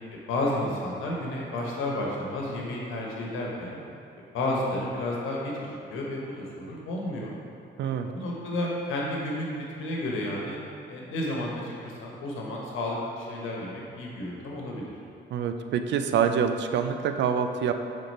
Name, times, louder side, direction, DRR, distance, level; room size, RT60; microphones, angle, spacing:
voice 1, 0.1-3.8 4.3-7.4 7.8-10.6 10.9-14.8, left 1 dB, 90° left, -3 dB, 1.2 m, -32 dB
voice 2, 7.8-8.1 15.3-17.7, right 7 dB, 65° right, 7 dB, 0.5 m, -26 dB
6.5 x 4.1 x 4.2 m, 2.6 s
cardioid pair, 90°, 20 cm